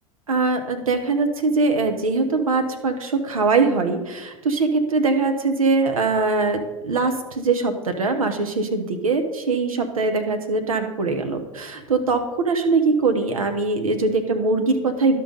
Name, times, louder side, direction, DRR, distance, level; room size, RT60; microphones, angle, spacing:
voice 1, 0.3-15.2, right 3 dB, 90° right, 6 dB, 1.1 m, -22 dB
12.0 x 5.8 x 3.9 m, 1.1 s
hypercardioid pair, 85°, 18 cm